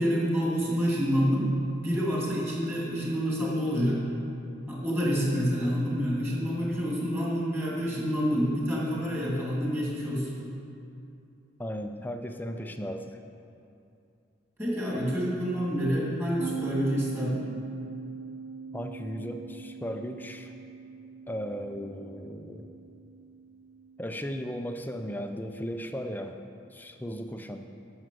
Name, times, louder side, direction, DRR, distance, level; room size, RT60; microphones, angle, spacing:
voice 1, 0.0-1.5 1.8-4.0 4.7-10.3 14.6-17.4, equal, 10° right, -5 dB, 2.6 m, -28 dB
voice 2, 11.6-13.1 18.7-20.5 21.3-22.7 24.0-26.3 26.7-27.6, equal, 10° left, 6 dB, 0.5 m, -36 dB
sound 1, 16.4-25.9, right 6 dB, 70° right, 0.9 m, -42 dB
11.0 x 6.5 x 7.6 m, 2.6 s
head